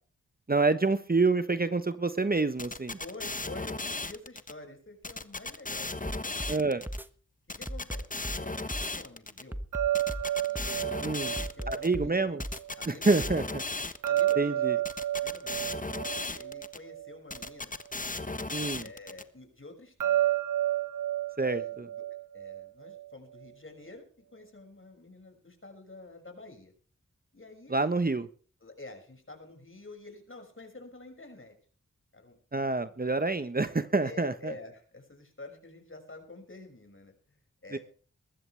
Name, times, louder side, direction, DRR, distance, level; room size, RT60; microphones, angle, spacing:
voice 1, 0.5-3.0 6.5-6.8 11.0-11.3 11.7-12.4 12.9-13.6 14.4-14.8 18.5-18.8 21.4-21.9 27.7-28.3 32.5-34.5 37.7-37.8, right 3 dB, 30° right, 11 dB, 1.2 m, -27 dB
sound 1, 2.6-4.5 5.0-7.0 7.5-9.4 9.9-11.9 12.4-14.3 14.8-16.8 17.3-19.2, left 2 dB, 25° left, 1.3 m, -36 dB
voice 2, 3.0-6.4 7.5-8.1 8.4-9.6 10.4-12.2 12.8-13.3 14.0-14.6 15.2-15.5 16.2-17.7 18.8-20.3 21.4-21.8 22.1-24.1 24.3-26.7 27.3-27.8 28.6-31.5 32.1-33.1 34.0-37.8, left 2 dB, 40° left, 4 dB, 6.4 m, -48 dB
sound 2, 6.1-6.6 6.9-7.1 7.7-8.4 8.7-8.9 9.5-10.2 10.6-10.8 11.4-12.1 12.4-12.6 13.2-13.4, equal, 5° right, 1.3 m, -36 dB
sound 3, 9.7-12.8 14.0-17.5 20.0-23.1, right 12 dB, 80° right, 0.7 m, -31 dB
20.5 x 14.5 x 3.4 m, 0.42 s
cardioid pair, 40°, 31 cm